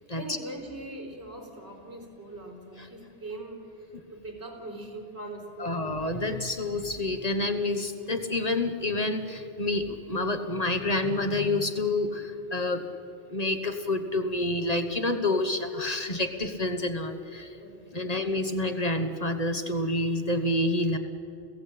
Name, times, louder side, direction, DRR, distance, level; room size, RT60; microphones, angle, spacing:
voice 1, 0.0-5.8 16.0-16.1 17.6-18.1, right 1 dB, 85° right, 1 dB, 4.3 m, -41 dB
voice 2, 5.6-12.8 13.3-17.5 17.9-21.0, left 2 dB, 35° left, 7 dB, 1.2 m, -28 dB
29.5 x 16.0 x 8.6 m, 2.8 s
omnidirectional pair, 1.1 m